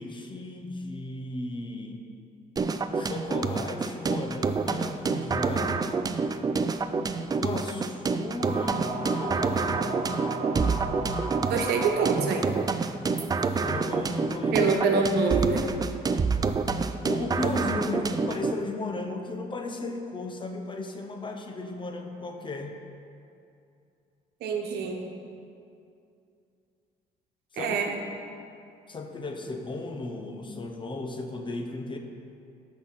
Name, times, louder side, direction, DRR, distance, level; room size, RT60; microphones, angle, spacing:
voice 1, 0.0-2.0 2.9-5.9 7.1-10.4 13.6-14.8 15.5-15.8 17.0-22.8 27.5-27.8 28.9-32.0, left 2 dB, 30° left, 4 dB, 1.0 m, -35 dB
sound 1, 2.6-18.6, right 4 dB, 25° right, 0.4 m, -28 dB
sound 2, 8.4-13.0, right 3 dB, 45° right, 2.4 m, -35 dB
voice 2, 11.5-12.5 14.5-15.7 24.4-25.0 27.6-27.9, right 4 dB, 75° right, 2 dB, 1.3 m, -25 dB
13.5 x 5.9 x 4.2 m, 2.5 s
cardioid pair, 110°, 17 cm